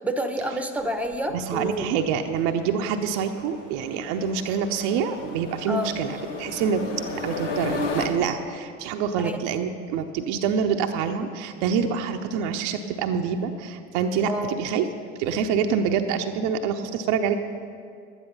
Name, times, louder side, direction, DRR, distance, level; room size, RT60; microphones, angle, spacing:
voice 1, 0.0-1.9 5.7-6.0 9.2-9.4 14.3-14.7, equal, 5° right, 8 dB, 1.0 m, -29 dB
sound 1, 0.8-8.1, left 4 dB, 80° left, 1.2 m, -35 dB
voice 2, 1.3-6.1 6.4-6.8 7.1-14.3 14.6-14.9 15.2-17.3, right 7 dB, 60° right, 5 dB, 0.7 m, -26 dB
11.5 x 10.0 x 5.4 m, 2.2 s
hypercardioid pair, 65°, 36 cm